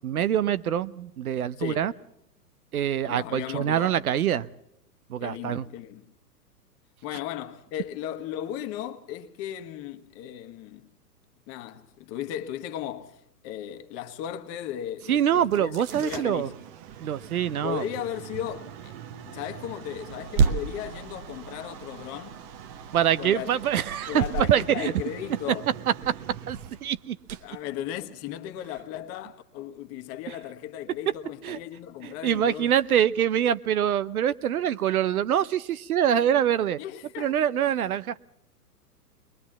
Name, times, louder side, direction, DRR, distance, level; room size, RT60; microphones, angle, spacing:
voice 1, 0.0-1.9 2.7-4.5 5.1-5.6 15.1-16.5 17.0-17.9 22.9-24.9 26.1-26.2 26.5-27.2 31.4-31.6 32.0-36.8 37.2-38.2, right 10 dB, 65° right, 0.8 m, -25 dB
voice 2, 1.6-1.9 3.0-4.0 5.2-6.0 7.0-10.9 11.5-16.5 17.6-18.9 19.2-22.4 23.2-23.5 24.1-25.7 27.4-32.7 36.8-37.3, left 11 dB, 30° left, 1.4 m, -36 dB
sound 1, 15.4-28.4, right 6 dB, 30° right, 1.0 m, -34 dB
22.0 x 21.5 x 7.2 m
figure-of-eight pair, 110°, 48 cm